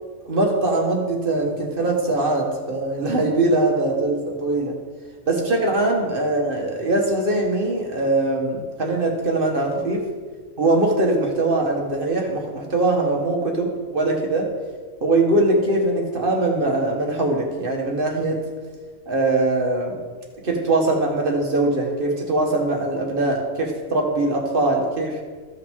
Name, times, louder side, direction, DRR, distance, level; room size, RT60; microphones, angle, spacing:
voice 1, 0.2-4.8 5.3-10.1 10.6-14.5 15.0-18.4 19.1-19.9 20.4-25.1, right 2 dB, 40° right, 1 dB, 1.4 m, -22 dB
14.5 x 5.6 x 3.6 m, 1.5 s
omnidirectional pair, 1.4 m